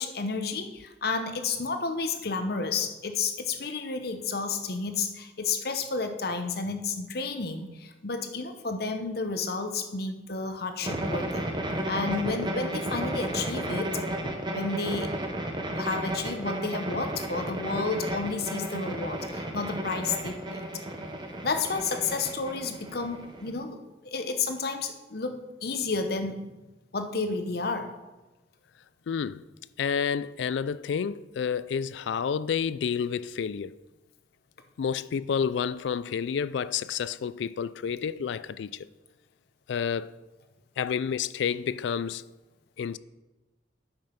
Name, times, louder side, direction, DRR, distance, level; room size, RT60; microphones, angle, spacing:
voice 1, 0.0-11.4 11.9-14.0 14.5-15.1 15.7-20.7 21.4-26.5 26.9-27.9, left 4 dB, 55° left, 0.8 m, -31 dB
sound 1, 10.8-23.6, right 1 dB, 25° right, 1.0 m, -33 dB
voice 2, 29.1-29.4 29.8-33.7 34.8-38.9 39.7-40.1 40.8-42.2 42.8-43.0, left 7 dB, 75° left, 0.3 m, -29 dB
9.0 x 5.4 x 5.8 m
head